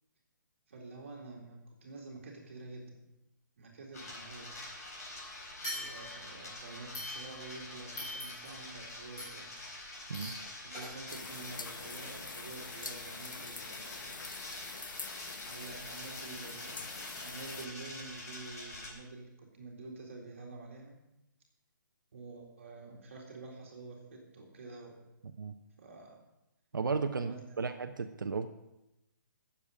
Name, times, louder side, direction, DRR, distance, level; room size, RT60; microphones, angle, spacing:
voice 1, 0.7-3.0 3.6-4.6 5.7-9.5 10.6-14.3 15.5-21.0 22.1-25.0 25.8-26.2 27.1-27.7, right 3 dB, 40° right, -1 dB, 2.1 m, -48 dB
sound 1, 3.9-18.9, left 2 dB, 50° left, 4.2 m, -46 dB
sound 2, 5.6-6.4 6.9-7.6 8.0-8.6 9.2-9.5 10.1-10.5 10.7-10.8, left 1 dB, 20° left, 5.5 m, -42 dB
sound 3, 11.1-17.7, left 4 dB, 75° left, 1.0 m, -45 dB
voice 2, 26.7-28.5, right 4 dB, 75° right, 6 dB, 0.9 m, -34 dB
17.5 x 7.3 x 4.9 m, 0.91 s
hypercardioid pair, 180°, 11 cm